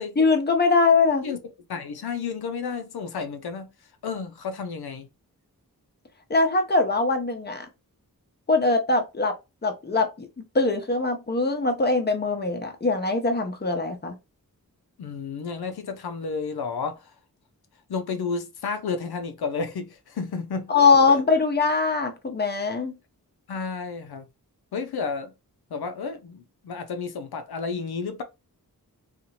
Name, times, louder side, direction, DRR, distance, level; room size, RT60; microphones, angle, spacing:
voice 1, 0.2-1.2 6.3-7.7 8.5-9.3 9.6-10.3 10.5-14.2 20.7-22.9, left 4 dB, 25° left, 0.7 m, -22 dB
voice 2, 1.7-3.7 4.0-5.1 15.0-17.1 17.9-21.2 23.5-24.3 24.7-25.3 25.7-28.2, left 5 dB, 80° left, 0.5 m, -31 dB
2.8 x 2.5 x 2.7 m
wide cardioid pair, 50°, 37 cm